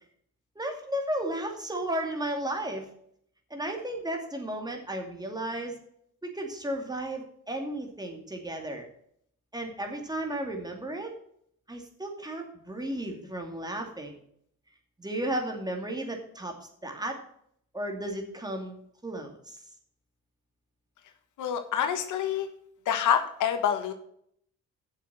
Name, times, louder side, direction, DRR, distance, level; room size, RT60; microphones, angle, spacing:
voice 1, 0.6-2.9 3.5-5.8 6.2-8.9 9.5-11.1 11.7-14.2 15.0-16.6 16.8-17.2 17.7-18.8 19.0-19.6, right 1 dB, 15° right, 3 dB, 2.5 m, -34 dB
voice 2, 21.4-22.5 22.9-23.9, left 9 dB, 80° left, 7 dB, 1.4 m, -27 dB
7.4 x 7.4 x 7.3 m, 0.69 s
cardioid pair, 90°, 30 cm